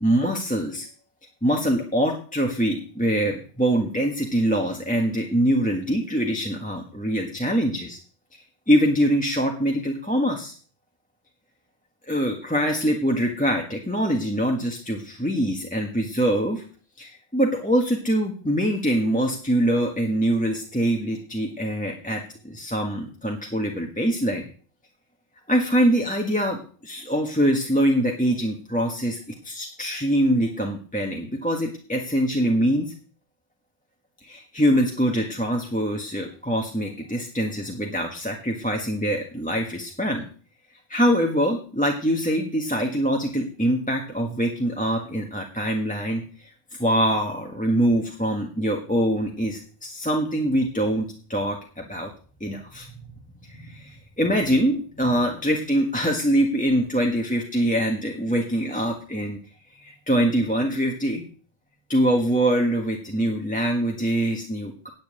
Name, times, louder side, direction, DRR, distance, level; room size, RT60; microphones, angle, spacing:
voice 1, 0.0-0.9 1.4-8.0 8.7-10.5 12.1-16.6 17.0-24.5 25.5-32.9 34.2-40.3 40.9-52.1 52.4-52.9 53.4-59.4 59.8-61.2 61.9-64.9, equal, 10° left, 1 dB, 1.5 m, -24 dB
9.5 x 7.3 x 8.7 m, 0.42 s
omnidirectional pair, 1.0 m